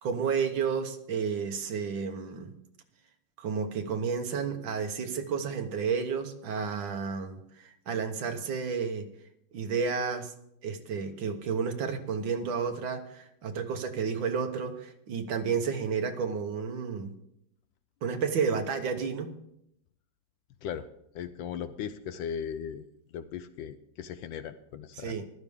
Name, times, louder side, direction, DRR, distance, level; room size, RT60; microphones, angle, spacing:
voice 1, 0.0-2.5 3.4-9.1 9.5-10.3 10.6-17.1 18.0-19.3 25.0-25.2, right 6 dB, 75° right, 6 dB, 1.8 m, -31 dB
voice 2, 21.1-22.9 23.1-25.2, left 8 dB, 75° left, 12 dB, 1.3 m, -37 dB
14.5 x 12.0 x 3.6 m, 0.76 s
omnidirectional pair, 2.2 m